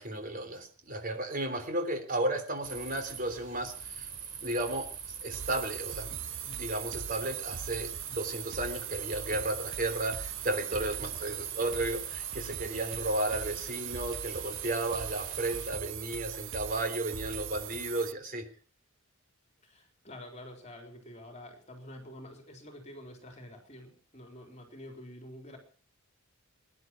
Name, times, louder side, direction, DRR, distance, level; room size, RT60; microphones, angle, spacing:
voice 1, 0.0-4.1 4.4-6.2 6.4-18.5, right 1 dB, 40° right, 7 dB, 3.5 m, -34 dB
sound 1, 2.6-15.7, right 7 dB, 75° right, 3.9 m, -43 dB
sound 2, 5.3-18.1, right 10 dB, 60° right, 0.7 m, -40 dB
voice 2, 10.7-11.1 19.6-25.6, left 1 dB, 30° left, 3 dB, 4.0 m, -48 dB
21.0 x 11.0 x 6.0 m, 0.42 s
head